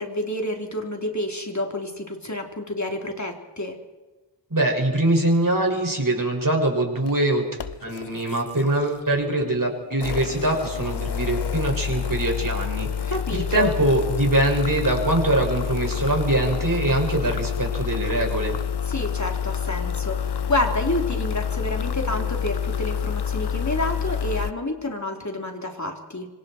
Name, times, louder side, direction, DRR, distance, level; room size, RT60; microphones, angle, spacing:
voice 1, 0.0-3.8 13.1-13.8 18.9-26.3, left 1 dB, 40° left, 2 dB, 3.8 m, -29 dB
voice 2, 4.5-7.4 7.8-18.6, right 1 dB, 45° right, 0 dB, 6.2 m, -23 dB
sound 1, 7.0-7.1 7.6-9.2 9.9-24.5, left 7 dB, 65° left, 0.7 m, -28 dB
26.0 x 25.5 x 4.6 m, 1.2 s
wide cardioid pair, 55°, 43 cm